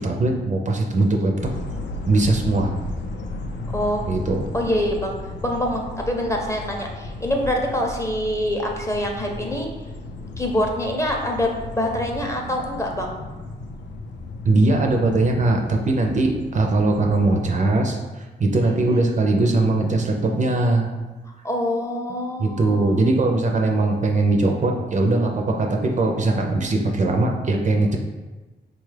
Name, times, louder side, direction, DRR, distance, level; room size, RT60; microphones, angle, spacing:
voice 1, 0.0-1.5 2.0-2.8 4.1-4.4 14.5-20.9 22.4-28.0, right 2 dB, 40° right, 2 dB, 0.4 m, -20 dB
sound 1, 1.4-17.5, left 2 dB, 70° left, 0.4 m, -34 dB
voice 2, 3.7-4.1 4.5-5.2 5.4-9.7 10.4-13.1 19.0-19.1 21.4-23.0, left 1 dB, 15° left, 1 dB, 0.5 m, -25 dB
3.7 x 2.3 x 3.2 m, 1.2 s
cardioid pair, 85°, 19 cm